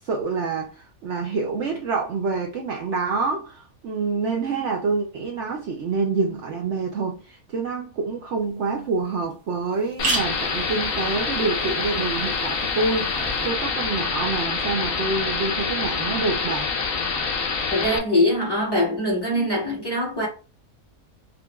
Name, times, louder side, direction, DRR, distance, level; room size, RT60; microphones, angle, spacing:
voice 1, 0.0-16.7, right 4 dB, 65° right, 0.8 m, -27 dB
sound 1, 8.4-8.5 9.0-9.1 9.3-9.4 9.7-13.5, right 3 dB, 85° right, 1.4 m, -33 dB
sound 2, 10.0-18.0, left 5 dB, 70° left, 1.1 m, -26 dB
voice 2, 17.7-20.3, left 1 dB, 15° left, 1.5 m, -22 dB
5.2 x 2.4 x 2.3 m
omnidirectional pair, 1.5 m